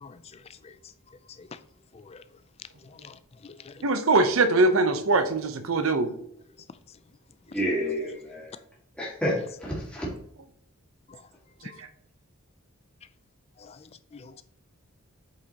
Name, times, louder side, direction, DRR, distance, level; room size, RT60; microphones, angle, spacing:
voice 1, 0.0-0.8 1.4-1.5 1.9-2.2 2.8-3.8 7.5-7.6 11.1-11.2 11.6-11.8 13.6-14.4, left 4 dB, 30° left, 13 dB, 0.4 m, -48 dB
voice 2, 3.8-6.1 11.8-11.9, right 3 dB, 80° right, 9 dB, 0.8 m, -22 dB
voice 3, 7.5-8.5 9.0-10.1, equal, 5° left, -6 dB, 2.0 m, -29 dB
8.2 x 5.1 x 2.9 m, 0.68 s
head